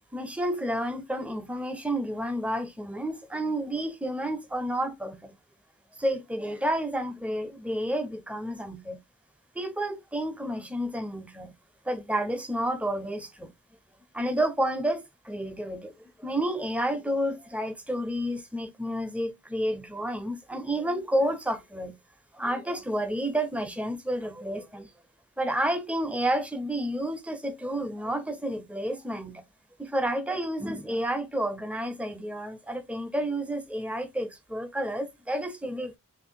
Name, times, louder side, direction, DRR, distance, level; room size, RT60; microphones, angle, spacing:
voice 1, 0.1-5.3 6.0-9.0 9.6-11.5 11.9-13.5 14.1-21.9 22.3-24.9 25.4-29.4 29.8-36.0, right 1 dB, 5° right, 0.5 m, -30 dB
3.1 x 2.6 x 4.3 m
head